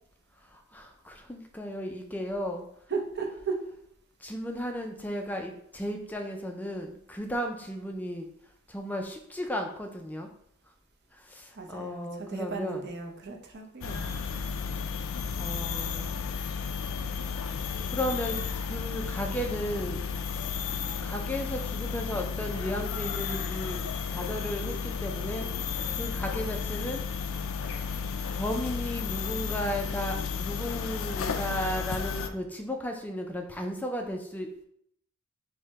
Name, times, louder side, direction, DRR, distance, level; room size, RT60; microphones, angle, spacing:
voice 1, 0.5-2.6 4.2-8.3 8.7-10.3 11.1-12.8 15.4-16.3 17.9-20.4 21.0-25.5 25.9-27.0 28.3-34.5, equal, 10° left, 3 dB, 0.3 m, -35 dB
voice 2, 2.9-3.6 11.5-14.2, right 4 dB, 55° right, 3 dB, 0.7 m, -35 dB
sound 1, 13.8-32.3, left 6 dB, 80° left, 0.4 m, -33 dB
4.6 x 2.1 x 4.5 m, 0.71 s
head